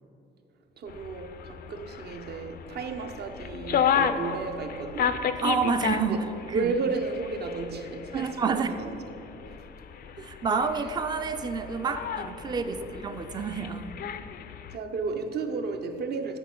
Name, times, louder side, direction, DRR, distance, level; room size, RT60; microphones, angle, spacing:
voice 1, 0.8-5.3 6.1-8.9 9.5-9.6 10.2-10.3 12.6-12.9 14.7-16.4, right 4 dB, 55° right, 6 dB, 0.7 m, -33 dB
sound 1, 0.9-14.8, left 7 dB, 50° left, 0.4 m, -33 dB
voice 2, 5.4-6.7 8.1-8.8 10.2-13.9, right 5 dB, 20° right, 9 dB, 0.4 m, -29 dB
9.8 x 4.3 x 3.7 m, 2.9 s
cardioid pair, 90°, 20 cm